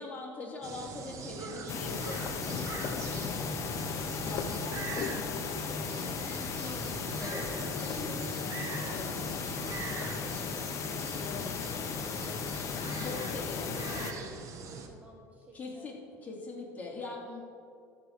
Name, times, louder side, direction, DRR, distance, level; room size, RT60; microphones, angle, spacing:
voice 1, 0.0-2.4 7.2-7.5 7.8-8.0 13.0-13.7 14.0-14.1 15.5-17.4, left 3 dB, 20° left, -3 dB, 2.8 m, -41 dB
sound 1, 0.6-14.9, right 5 dB, 45° right, 1.2 m, -42 dB
sound 2, 1.7-14.1, left 6 dB, 45° left, 0.8 m, -35 dB
voice 2, 3.0-7.6 8.0-14.3 14.5-15.9, right 2 dB, 20° right, 0 dB, 1.2 m, -53 dB
13.5 x 4.9 x 6.6 m, 2.3 s
supercardioid pair, 110°, 7 cm